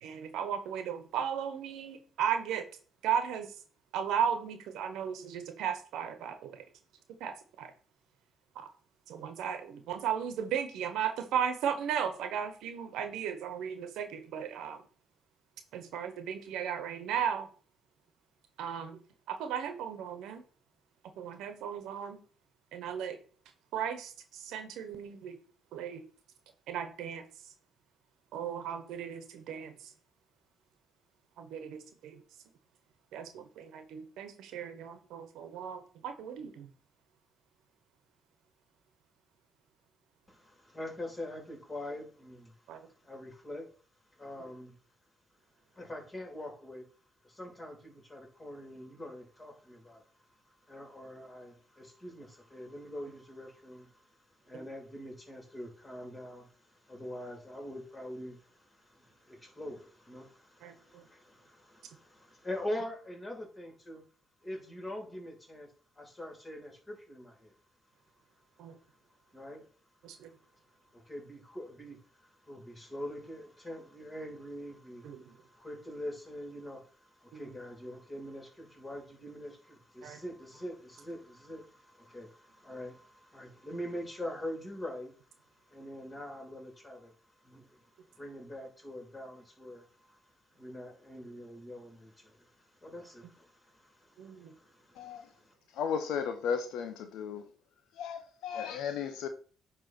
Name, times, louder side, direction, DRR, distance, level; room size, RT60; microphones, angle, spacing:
voice 1, 0.0-2.6 3.0-3.5 3.9-6.6 7.2-7.7 8.5-8.7 9.1-14.8 15.7-17.5 18.6-19.0 19.3-20.4 21.2-22.2 22.7-23.2 23.7-25.4 25.7-26.0 26.7-27.2 28.3-29.9 31.4-32.2 33.1-36.7 42.7-42.9 54.5-54.6 60.6-61.0 68.6-68.7 70.0-70.3 75.0-75.3 77.3-77.6 80.0-80.2 94.2-94.5, right 8 dB, 80° right, 1.2 m, -36 dB
voice 2, 40.3-42.5 43.0-43.7 44.1-44.7 45.7-46.9 47.2-50.0 50.7-54.1 54.4-64.0 64.4-65.7 66.0-67.5 69.3-69.7 70.9-85.2 85.7-87.1 87.4-90.2 90.6-95.5, left 1 dB, 20° left, 3.8 m, -44 dB
voice 3, 95.0-95.3 95.8-97.4 98.0-99.3, left 7 dB, 80° left, 0.9 m, -35 dB
9.3 x 3.3 x 6.0 m
supercardioid pair, 65°, 0 cm